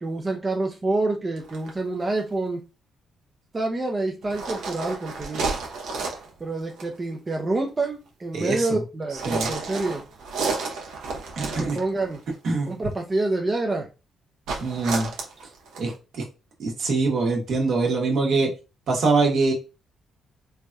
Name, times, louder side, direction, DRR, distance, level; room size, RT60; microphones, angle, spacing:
voice 1, 0.0-2.6 3.5-5.5 6.4-10.0 11.4-12.2 12.7-13.9 14.6-14.8, right 2 dB, 25° right, 1 dB, 0.5 m, -27 dB
sound 1, 1.4-1.7 4.2-6.3 6.7-6.9 9.1-12.2 14.5-15.9, right 4 dB, 85° right, 0.7 m, -31 dB
voice 2, 8.3-8.8 9.2-9.5 11.3-11.8 12.4-12.7 14.6-15.1 15.8-16.2 16.6-18.5 18.9-19.5, right 3 dB, 65° right, 0 dB, 1.0 m, -23 dB
3.2 x 2.6 x 2.2 m, 0.30 s
cardioid pair, 90°, 0 cm